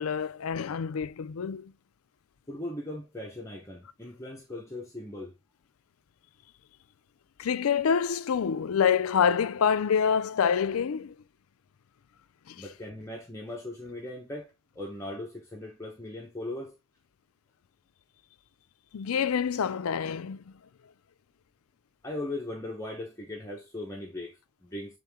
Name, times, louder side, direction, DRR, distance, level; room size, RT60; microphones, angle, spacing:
voice 1, 0.0-1.7 7.4-11.1 12.5-12.7 18.9-20.5, left 7 dB, 85° left, 0.4 m, -27 dB
voice 2, 2.5-5.3 12.6-16.7 22.0-25.0, left 1 dB, 15° left, 0.9 m, -39 dB
7.7 x 3.7 x 3.5 m
head